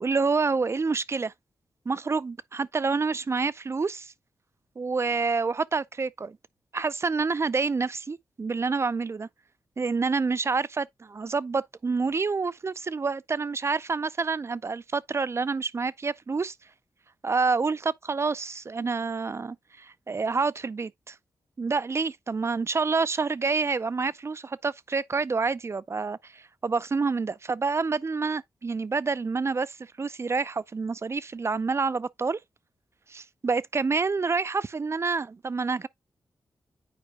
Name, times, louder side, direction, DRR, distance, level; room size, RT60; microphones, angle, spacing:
voice 1, 0.0-1.3 1.9-4.1 4.8-6.4 6.7-9.3 9.8-16.5 17.2-21.1 21.6-32.4 33.1-35.9, right 4 dB, 40° right, 0.4 m, -28 dB
9.6 x 4.6 x 2.3 m
cardioid pair, 50°, 7 cm